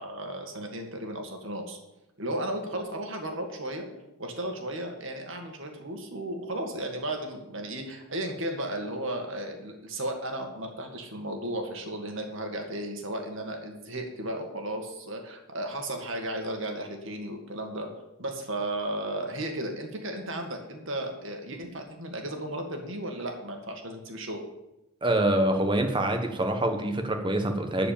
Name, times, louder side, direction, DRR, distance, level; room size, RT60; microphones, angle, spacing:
voice 1, 0.0-1.8 2.2-3.9 4.2-17.9 18.2-24.4, right 1 dB, 60° right, 3 dB, 2.1 m, -34 dB
voice 2, 25.0-27.9, right 1 dB, 20° right, 6 dB, 1.2 m, -25 dB
12.5 x 5.0 x 8.8 m, 0.93 s
head